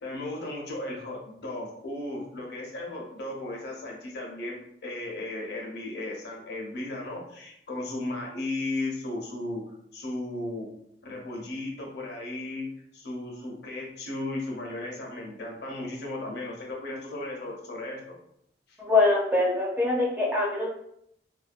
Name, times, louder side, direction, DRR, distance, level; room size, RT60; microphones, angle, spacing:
voice 1, 0.0-10.7 11.0-18.0 18.7-18.8, left 2 dB, 65° left, -1 dB, 0.7 m, -35 dB
voice 2, 18.8-20.7, left 2 dB, 10° right, -3 dB, 0.5 m, -23 dB
2.6 x 2.2 x 2.4 m, 0.72 s
head